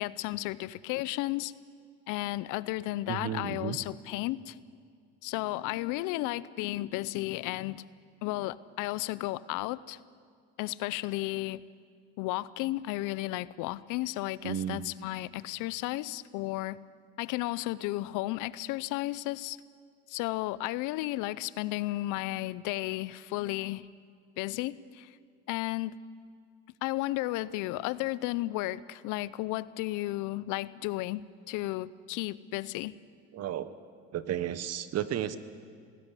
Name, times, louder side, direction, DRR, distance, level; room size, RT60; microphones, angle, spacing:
voice 1, 0.0-1.5 2.1-4.6 5.2-7.8 8.2-10.0 10.6-11.6 12.2-16.8 17.2-19.6 20.1-23.9 24.4-25.1 25.5-25.9 26.8-32.9, left 18 dB, 80° left, 19 dB, 0.7 m, -33 dB
voice 2, 3.1-3.8 14.4-14.8 33.3-33.7 34.1-35.4, right 11 dB, 50° right, 13 dB, 1.3 m, -33 dB
19.5 x 16.5 x 9.9 m, 2.1 s
cardioid pair, 110°, 31 cm